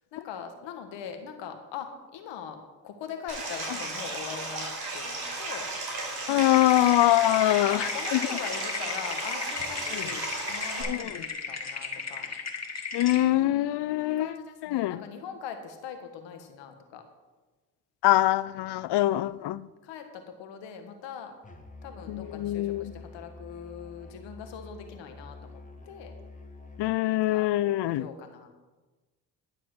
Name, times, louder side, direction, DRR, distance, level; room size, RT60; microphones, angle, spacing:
voice 1, 0.1-2.6 2.8-5.7 7.4-12.3 14.1-17.0 19.0-21.3 21.8-26.1 27.3-27.5 27.9-28.5, left 7 dB, 85° left, 1.6 m, -42 dB
Stream, 3.3-10.8, right 2 dB, 60° right, 4.7 m, -35 dB
voice 2, 6.3-8.2 10.8-11.1 12.9-14.3 14.7-15.0 18.0-19.7 22.1-22.9 26.8-28.1, left 15 dB, 70° left, 0.6 m, -24 dB
sound 1, 6.5-13.2, left 5 dB, 40° left, 2.0 m, -36 dB
Musical instrument, 21.4-26.9, left 2 dB, 15° left, 1.8 m, -47 dB
11.5 x 7.4 x 6.3 m
supercardioid pair, 60°, 42 cm